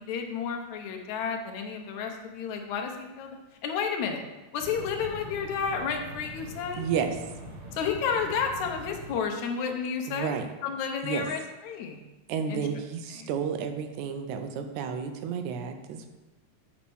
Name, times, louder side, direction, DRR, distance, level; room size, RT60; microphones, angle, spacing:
voice 1, 0.0-3.4 3.6-4.2 4.5-6.8 7.7-12.0 12.5-12.7 13.2-13.3, left 6 dB, 80° left, 3 dB, 2.3 m, -31 dB
sound 1, 4.6-9.1, right 1 dB, 60° right, 2.2 m, -43 dB
voice 2, 6.8-7.2 10.1-10.5 11.0-11.2 12.3-16.1, right 7 dB, 80° right, 7 dB, 2.1 m, -31 dB
8.1 x 4.4 x 6.2 m, 1.1 s
omnidirectional pair, 3.3 m